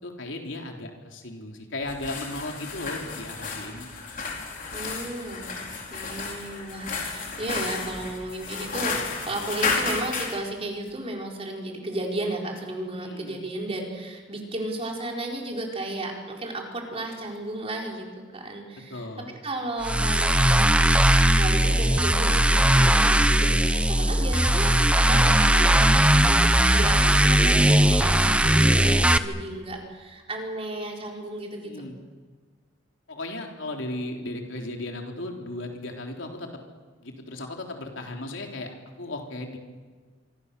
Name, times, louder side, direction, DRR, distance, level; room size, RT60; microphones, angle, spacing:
voice 1, 0.0-3.9 13.0-13.4 18.9-19.4 31.6-32.0 33.1-36.5 37.0-39.6, left 2 dB, 80° left, 2 dB, 3.6 m, -36 dB
sound 1, 1.8-10.4, left 4 dB, 45° left, 4.1 m, -32 dB
voice 2, 4.7-5.5 5.9-9.0 9.3-20.9 21.3-31.9, right 1 dB, 30° right, 1 dB, 4.5 m, -34 dB
sound 2, 19.8-29.2, right 1 dB, 5° right, 0.8 m, -19 dB
27.5 x 24.5 x 6.9 m, 1.5 s
head